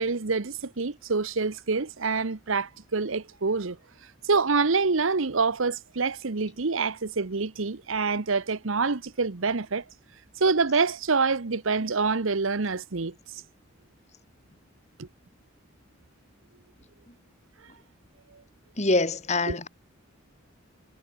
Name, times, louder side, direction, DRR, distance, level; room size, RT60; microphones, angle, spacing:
voice 1, 0.0-3.8 4.2-9.8 10.4-13.1 15.0-15.1 19.5-19.6, right 4 dB, 75° right, 1.0 m, -26 dB
voice 2, 18.8-19.7, left 2 dB, 35° left, 1.9 m, -24 dB
head